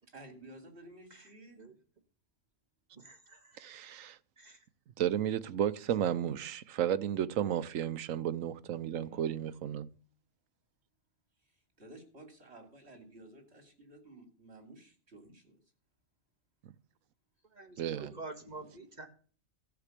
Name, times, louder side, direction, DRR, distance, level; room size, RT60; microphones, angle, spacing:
voice 1, 0.0-1.6 9.0-9.6 11.4-15.6 17.4-17.5 17.9-18.8, right 1 dB, 55° right, 3.7 m, -54 dB
voice 2, 2.9-3.7 4.4-4.6 17.5-19.1, right 3 dB, 35° right, 2.0 m, -48 dB
voice 3, 3.6-4.2 5.0-9.9 16.6-16.7 17.8-18.1, right 10 dB, 85° right, 1.2 m, -33 dB
14.0 x 5.9 x 8.3 m
omnidirectional pair, 1.3 m